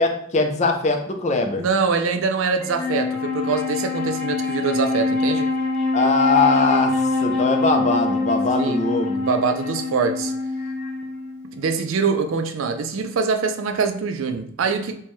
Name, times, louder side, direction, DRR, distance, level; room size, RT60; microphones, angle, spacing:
voice 1, 0.0-1.6 5.9-6.9 7.2-9.2, left 3 dB, 35° left, 4 dB, 0.5 m, -21 dB
voice 2, 1.6-5.5 8.6-8.8 9.1-10.3 11.5-15.0, right 5 dB, 65° right, 7 dB, 0.4 m, -24 dB
Wind instrument woodwind instrument, 2.6-12.1, left 3 dB, 5° left, 0.8 m, -24 dB
4.4 x 2.2 x 3.1 m, 0.67 s
head